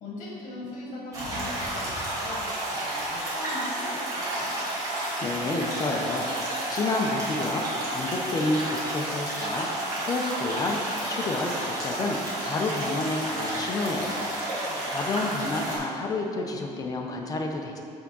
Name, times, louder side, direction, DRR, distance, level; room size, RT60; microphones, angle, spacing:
voice 1, 0.0-4.5 14.6-14.9 15.2-15.8, left 2 dB, 65° left, -4 dB, 1.3 m, -40 dB
sound 1, 1.1-15.8, right 1 dB, 25° right, 1.6 m, -31 dB
voice 2, 5.2-10.8 11.1-12.2 12.4-14.3 14.6-17.8, left 2 dB, 30° left, 2 dB, 0.5 m, -30 dB
6.1 x 3.5 x 6.0 m, 2.6 s
cardioid pair, 180°, 13 cm